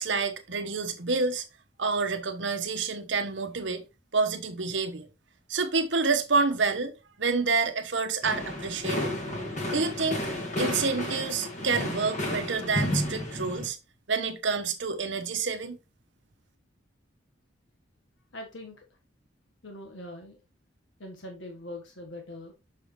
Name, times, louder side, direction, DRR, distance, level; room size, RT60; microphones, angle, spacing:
voice 1, 0.0-1.4 1.8-3.8 4.1-5.1 5.5-6.9 7.2-9.1 9.7-10.2 10.6-13.8 14.1-15.8, right 4 dB, 70° right, 1.1 m, -28 dB
sound 1, 8.2-13.7, left 1 dB, 40° left, 1.9 m, -32 dB
voice 2, 18.3-18.9 19.6-20.4 21.0-22.5, left 1 dB, 80° left, 1.5 m, -42 dB
6.9 x 6.1 x 3.2 m
head